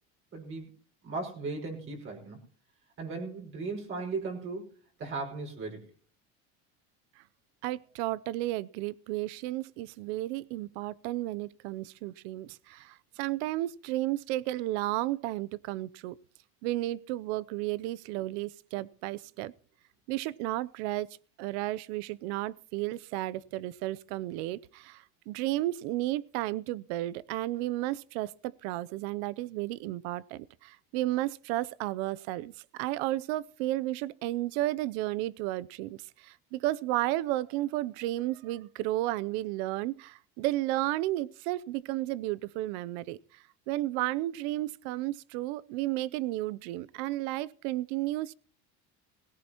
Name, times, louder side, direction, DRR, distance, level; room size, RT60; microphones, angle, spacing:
voice 1, 0.3-0.7 1.0-2.5 3.0-5.9, right 3 dB, 40° right, 1 dB, 5.3 m, -37 dB
voice 2, 7.6-16.2 16.6-19.5 20.1-21.1 21.4-48.3, right 16 dB, 80° right, 21 dB, 0.7 m, -33 dB
18.0 x 17.5 x 3.0 m, 0.40 s
cardioid pair, 140°, 33 cm